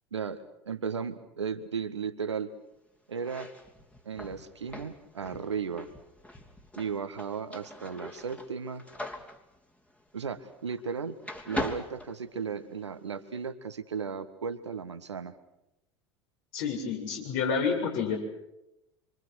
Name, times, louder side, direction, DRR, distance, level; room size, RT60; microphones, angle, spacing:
voice 1, 0.1-2.5 3.1-3.5 4.0-5.9 6.8-8.9 10.1-11.2 11.5-15.3, right 6 dB, 80° right, 11 dB, 1.7 m, -35 dB
sound 1, 3.1-10.9 11.2-12.9, left 1 dB, 10° left, 3.1 m, -41 dB
voice 2, 16.5-18.2, left 6 dB, 55° left, 1 dB, 7.6 m, -29 dB
27.0 x 25.5 x 6.4 m, 0.87 s
figure-of-eight pair, 75°, 14 cm